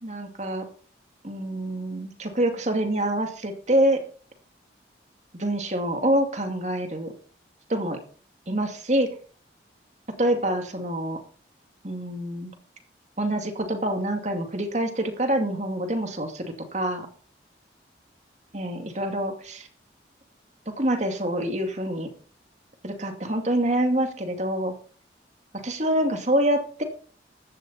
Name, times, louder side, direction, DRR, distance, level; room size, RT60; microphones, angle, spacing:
voice 1, 0.0-0.7 1.2-4.0 5.4-7.1 7.7-8.0 8.5-9.1 10.2-11.2 11.8-12.5 13.2-17.1 18.5-19.7 20.7-22.1 22.8-24.7 25.6-26.8, right 1 dB, 40° right, 5 dB, 2.4 m, -26 dB
15.0 x 12.0 x 4.3 m, 0.42 s
head